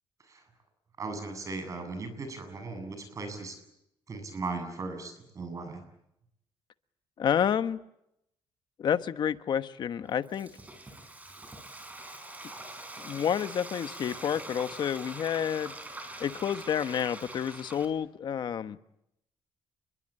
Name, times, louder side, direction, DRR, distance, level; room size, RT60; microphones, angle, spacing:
voice 1, 1.0-3.6 4.1-5.8, right 3 dB, 35° right, 8 dB, 7.8 m, -37 dB
voice 2, 7.2-7.8 8.8-10.5 13.0-15.7 16.2-18.8, left 8 dB, 50° left, 11 dB, 1.2 m, -29 dB
Frying (food), 10.0-17.9, right 2 dB, 15° right, 5.2 m, -44 dB
29.0 x 22.5 x 8.9 m, 0.80 s
cardioid pair, 155°, 10 cm